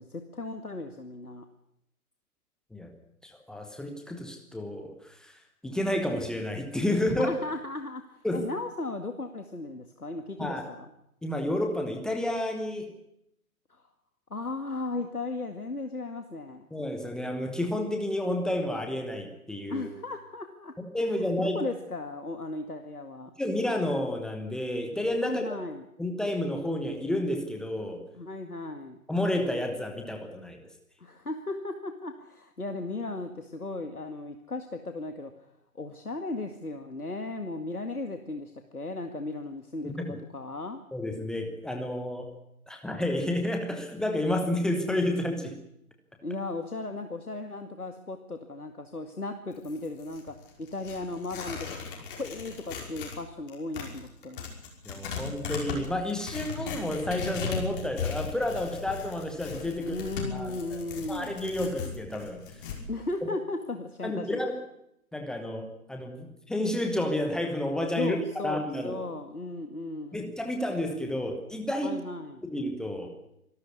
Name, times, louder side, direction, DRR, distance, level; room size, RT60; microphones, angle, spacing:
voice 1, 0.0-1.5 7.0-10.9 13.7-13.8 14.3-16.7 19.7-20.7 21.4-23.3 25.2-25.9 28.1-29.0 31.0-35.5 35.7-40.8 46.2-54.5 59.8-61.4 62.9-64.4 68.0-70.3 71.8-72.4, left 2 dB, 85° left, 6 dB, 2.2 m, -36 dB
voice 2, 3.2-7.3 8.2-8.5 10.4-10.7 11.2-12.9 16.7-19.9 20.8-21.6 23.4-25.5 26.0-28.0 29.1-30.6 39.8-40.1 40.9-42.3 42.7-45.5 54.8-60.0 60.3-60.8 61.1-62.4 64.0-64.5 65.1-68.2 68.4-69.0 70.1-72.0 72.5-73.1, left 1 dB, ahead, 3 dB, 1.0 m, -30 dB
Tearing, 49.5-53.2 53.5-62.8, left 5 dB, 35° left, 5.8 m, -37 dB
25.5 x 13.0 x 9.5 m, 0.79 s
figure-of-eight pair, 135°, 44 cm